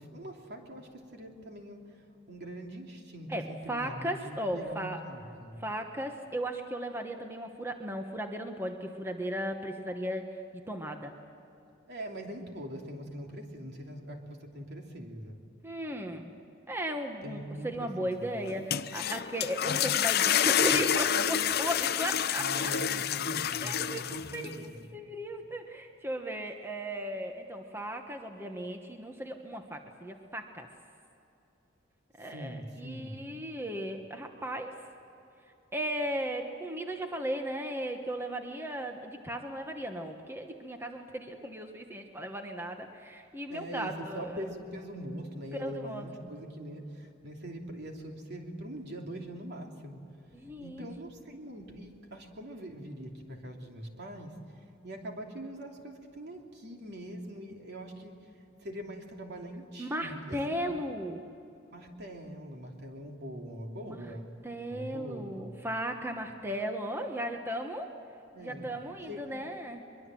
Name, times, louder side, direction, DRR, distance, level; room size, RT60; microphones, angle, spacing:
voice 1, 0.0-5.6 11.9-15.4 17.2-18.4 22.3-24.8 32.2-33.2 43.5-60.7 61.7-64.3 64.7-65.7 68.3-68.8 69.1-69.4, equal, 60° right, 2 dB, 3.0 m, -43 dB
voice 2, 3.3-5.0 5.6-11.1 15.6-16.3 16.7-22.7 23.6-24.4 24.9-30.7 32.2-34.7 35.7-44.5 45.6-46.0 50.3-50.9 59.8-61.2 63.9-64.1 64.4-67.9 68.4-69.8, equal, 10° right, 4 dB, 1.2 m, -36 dB
sound 1, 18.5-24.5, left 9 dB, 55° left, 0.6 m, -28 dB
23.0 x 23.0 x 7.7 m, 2.9 s
head